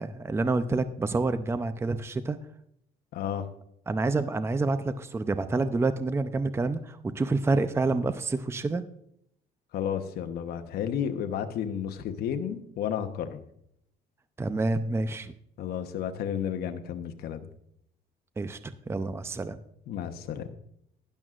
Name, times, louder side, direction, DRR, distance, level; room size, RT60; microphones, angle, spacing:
voice 1, 0.0-2.4 3.9-8.9 14.4-15.3 18.4-19.6, right 3 dB, 15° right, 11 dB, 0.6 m, -28 dB
voice 2, 3.1-3.5 9.7-13.4 15.6-17.4 19.9-20.5, left 9 dB, 70° left, 7 dB, 1.0 m, -32 dB
12.0 x 10.5 x 2.5 m, 0.72 s
cardioid pair, 110°, 17 cm